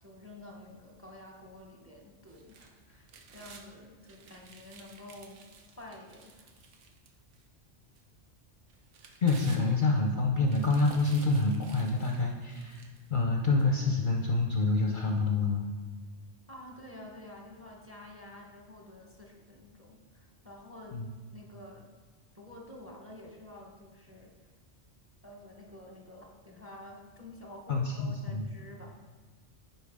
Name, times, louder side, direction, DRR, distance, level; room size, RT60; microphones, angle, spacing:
voice 1, 0.0-5.5 5.8-6.5 16.5-21.0 21.3-21.9 22.3-24.3 25.2-29.2, left 1 dB, 15° right, 0 dB, 0.8 m, -49 dB
sound 1, 2.3-3.7 4.0-7.4 8.0-8.1 8.7-10.0 10.4-13.1 13.6-13.7, right 5 dB, 85° right, 1.1 m, -54 dB
voice 2, 9.2-12.8 13.1-15.6 20.9-21.1 27.7-28.4, left 3 dB, 55° left, 1 dB, 0.6 m, -27 dB
10.0 x 4.4 x 3.5 m, 1.4 s
omnidirectional pair, 1.2 m